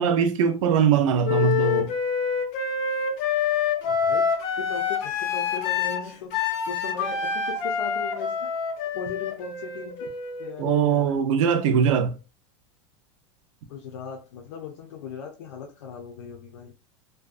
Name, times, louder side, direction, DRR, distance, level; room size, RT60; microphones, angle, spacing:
voice 1, 0.0-1.9 10.6-12.1, right 7 dB, 80° right, 0.5 m, -21 dB
Wind instrument woodwind instrument, 1.2-11.0, left 6 dB, 40° left, 0.5 m, -27 dB
voice 2, 3.8-8.5 8.9-10.1 10.4-11.2 13.7-16.7, left 6 dB, 80° left, 0.6 m, -38 dB
2.6 x 2.2 x 2.4 m
supercardioid pair, 175°, 16 cm